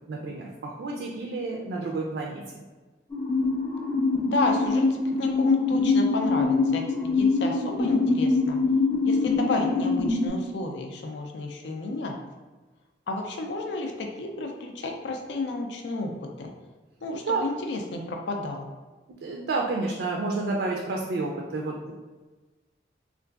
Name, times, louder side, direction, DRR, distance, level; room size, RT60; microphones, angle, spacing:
voice 1, 0.1-2.6 17.2-17.4 19.2-21.9, right 3 dB, 80° right, -1 dB, 0.4 m, -30 dB
sound 1, 3.1-10.3, left 3 dB, 15° left, 0.4 m, -24 dB
voice 2, 4.2-4.9 5.2-8.6 9.1-12.2 13.1-16.5 17.0-18.7, left 2 dB, 80° left, 3 dB, 0.4 m, -31 dB
3.8 x 2.4 x 2.3 m, 1.3 s
head